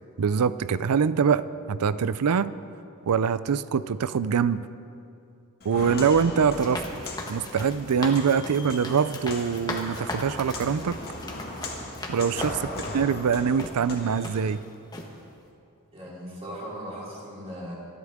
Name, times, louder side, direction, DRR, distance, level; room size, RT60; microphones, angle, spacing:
voice 1, 0.2-2.5 3.1-4.7 5.6-6.8 7.3-11.0 12.1-12.7 12.9-14.6, right 6 dB, 90° right, 15 dB, 0.5 m, -24 dB
Walk footsteps, 5.6-14.4, left 2 dB, 45° left, 2.0 m, -39 dB
sound 1, 6.5-13.0 13.6-13.7 14.2-14.6 14.9-15.1, left 1 dB, 20° left, 1.4 m, -37 dB
voice 2, 15.9-17.7, equal, 30° right, -7 dB, 4.2 m, -38 dB
26.0 x 11.0 x 3.7 m, 2.6 s
head